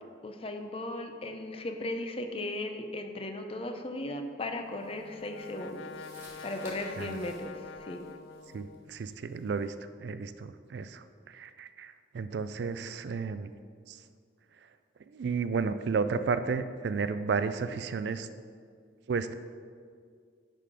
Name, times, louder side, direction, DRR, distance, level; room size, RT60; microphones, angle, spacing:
voice 1, 0.2-5.9 6.4-8.0, left 1 dB, 30° left, 6 dB, 0.5 m, -37 dB
Brass instrument, 4.5-9.2, left 5 dB, 90° left, 0.3 m, -47 dB
sound 1, 4.8-9.7, equal, 15° right, 1.9 m, -55 dB
voice 2, 8.5-9.7 10.0-13.5 13.9-14.0 15.1-18.3 19.1-19.3, right 5 dB, 65° right, 12 dB, 0.3 m, -32 dB
9.9 x 3.8 x 5.0 m, 2.1 s
head